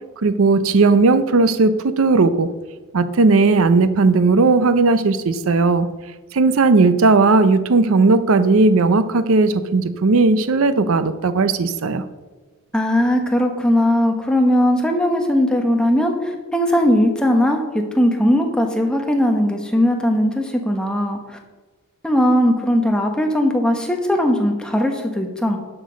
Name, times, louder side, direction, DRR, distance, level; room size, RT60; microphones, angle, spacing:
voice 1, 0.2-2.5 2.9-5.9 6.3-12.0, right 3 dB, 70° right, 12 dB, 0.5 m, -16 dB
voice 2, 12.7-21.4 22.0-25.6, equal, 5° left, 3 dB, 1.1 m, -18 dB
11.5 x 6.0 x 5.1 m, 1.3 s
head